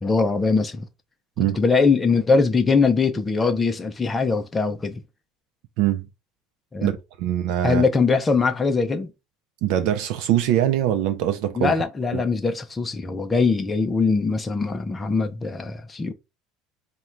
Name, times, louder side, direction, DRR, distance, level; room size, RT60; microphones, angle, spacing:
voice 1, 0.0-0.9 1.6-5.0 6.7-6.9 7.6-9.1 11.6-16.1, left 4 dB, 15° left, 0.4 m, -21 dB
voice 2, 6.8-7.8 9.6-11.7 12.1-12.2, right 12 dB, 65° right, 0.4 m, -23 dB
3.6 x 2.2 x 4.3 m
cardioid pair, 145°, 0 cm